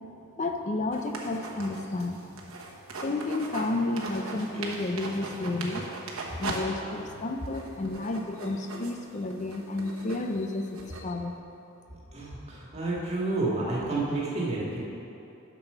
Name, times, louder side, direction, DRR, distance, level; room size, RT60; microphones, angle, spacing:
voice 1, 0.4-2.2 3.0-6.0 6.4-11.4, left 2 dB, 35° left, 5 dB, 0.5 m, -31 dB
sound 1, 0.9-3.7 4.0-6.6 6.9-7.0 7.5-11.0, right 3 dB, 80° right, 1.1 m, -39 dB
voice 2, 11.9-14.8, right 2 dB, 30° right, -5 dB, 1.8 m, -30 dB
7.4 x 6.1 x 5.5 m, 2.8 s
head